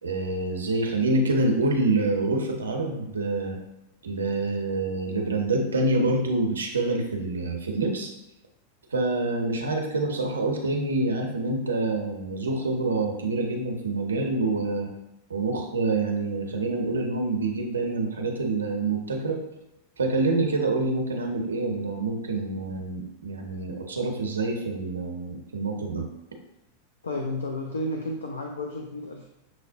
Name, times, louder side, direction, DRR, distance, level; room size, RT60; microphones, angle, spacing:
voice 1, 0.0-3.6 4.0-8.1 8.9-14.9 15.3-19.4 20.0-26.0, right 2 dB, 70° right, 2 dB, 0.6 m, -26 dB
voice 2, 27.0-29.3, left 1 dB, 75° left, 2 dB, 0.4 m, -32 dB
6.2 x 2.1 x 2.6 m, 0.90 s
figure-of-eight pair, 90°, 0 cm